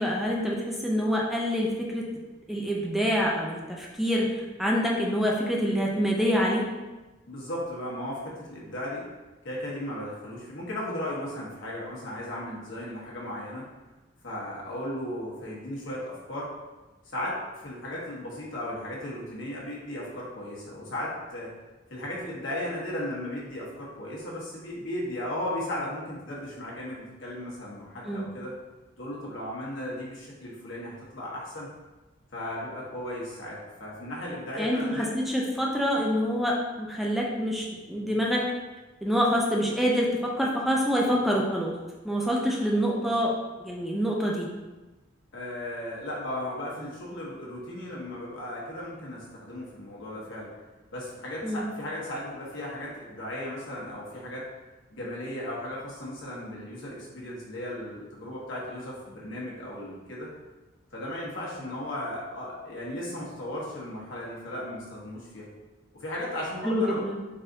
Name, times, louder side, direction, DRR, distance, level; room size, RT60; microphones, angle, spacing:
voice 1, 0.0-2.0 2.5-6.6 28.1-28.3 34.6-38.5 39.0-41.7 42.0-43.3 43.6-44.5 51.4-51.7 66.6-67.2, equal, ahead, -3 dB, 0.4 m, -26 dB
voice 2, 7.3-9.1 9.4-13.7 14.2-16.5 17.0-21.5 21.9-28.6 29.0-31.7 32.3-35.1 45.3-50.5 50.9-54.5 54.9-60.3 60.9-65.5 65.9-67.0, left 1 dB, 75° left, -5 dB, 1.2 m, -36 dB
4.0 x 2.6 x 3.9 m, 1.2 s
head